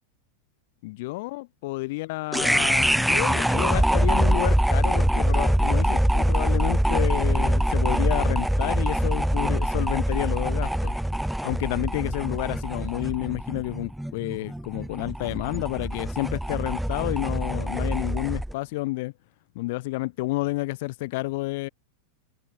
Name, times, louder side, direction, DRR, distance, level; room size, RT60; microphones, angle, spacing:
voice 1, 0.8-10.9 11.4-19.1 19.5-21.7, left 22 dB, 50° left, 1.0 m, -30 dB
sound 1, 2.3-18.5, right 1 dB, ahead, 1.1 m, -24 dB
figure-of-eight pair, 90°, 0 cm